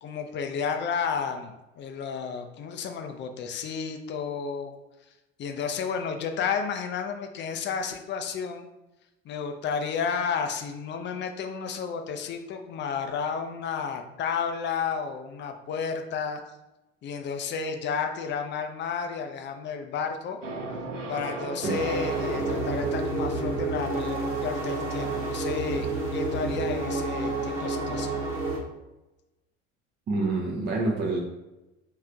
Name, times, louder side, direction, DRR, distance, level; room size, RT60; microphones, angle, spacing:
voice 1, 0.0-4.7 5.4-8.7 9.2-16.4 17.0-20.4 21.1-25.9 26.1-28.2, left 6 dB, 30° left, 5 dB, 0.6 m, -32 dB
sound 1, 20.4-27.4, right 2 dB, 80° right, 0.6 m, -38 dB
sound 2, 21.6-28.6, right 2 dB, 65° right, 1.2 m, -29 dB
voice 2, 30.1-31.2, right 3 dB, 25° right, -1 dB, 0.7 m, -27 dB
6.4 x 3.2 x 2.4 m, 1.0 s
figure-of-eight pair, 60°, 36 cm